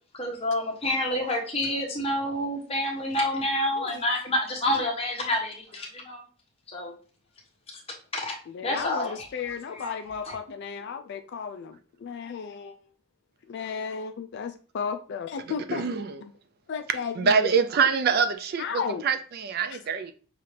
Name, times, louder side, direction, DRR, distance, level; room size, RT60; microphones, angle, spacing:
voice 1, 0.1-6.2 6.7-6.9 7.7-7.8 8.1-8.4 8.6-9.9 10.2-10.3, left 1 dB, 25° left, 0.9 m, -28 dB
voice 2, 8.5-12.8 13.5-15.8 16.7-17.5 18.6-19.0, left 6 dB, 50° left, 0.3 m, -34 dB
voice 3, 15.7-16.2 17.2-20.1, right 6 dB, 45° right, 0.4 m, -25 dB
5.9 x 2.4 x 3.2 m
head